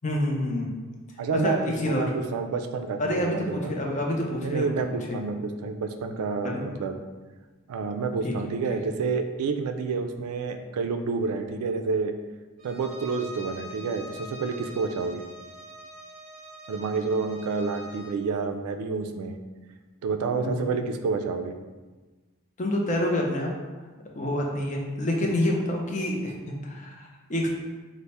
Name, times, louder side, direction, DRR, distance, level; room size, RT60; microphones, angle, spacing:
voice 1, 0.0-0.7 1.4-2.0 3.0-4.7 5.1-5.2 6.4-6.6 8.2-8.3 8.7-8.8 20.4-20.7 22.6-23.5 24.1-27.5, left 1 dB, 35° left, -1 dB, 0.5 m, -27 dB
voice 2, 1.2-1.6 1.9-3.7 4.4-6.9 7.7-12.1 12.6-15.2 16.7-19.4 20.0-21.5, right 4 dB, 85° right, 7 dB, 0.3 m, -29 dB
Bowed string instrument, 12.6-18.2, equal, 30° right, 0.6 m, -44 dB
3.3 x 2.0 x 4.1 m, 1.3 s
head